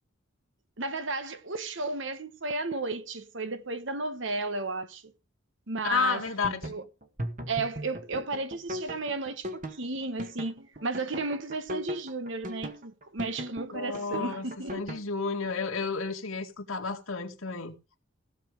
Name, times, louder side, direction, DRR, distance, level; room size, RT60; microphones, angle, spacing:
voice 1, 0.8-5.1 5.7-6.2 6.6-6.8 7.5-14.7, right 3 dB, 65° right, 1.3 m, -33 dB
voice 2, 5.8-6.7 13.7-14.5 14.7-17.8, left 5 dB, 90° left, 2.2 m, -31 dB
sound 1, 6.1-15.0, equal, 40° right, 1.7 m, -38 dB
16.5 x 6.7 x 5.0 m
head